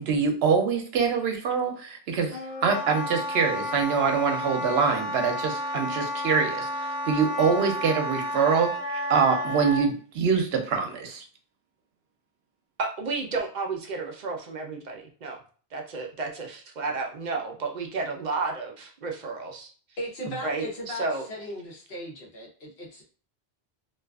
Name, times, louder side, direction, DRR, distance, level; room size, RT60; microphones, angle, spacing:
voice 1, 0.0-11.2, right 5 dB, 75° right, 5 dB, 0.8 m, -25 dB
Wind instrument woodwind instrument, 2.3-9.9, left 1 dB, 45° left, 0.7 m, -31 dB
voice 2, 12.8-15.4 15.7-19.7 20.4-21.2, right 3 dB, 55° right, 2 dB, 0.5 m, -32 dB
voice 3, 20.0-23.0, equal, 65° left, -2 dB, 1.0 m, -37 dB
2.6 x 2.4 x 2.2 m, 0.41 s
omnidirectional pair, 1.1 m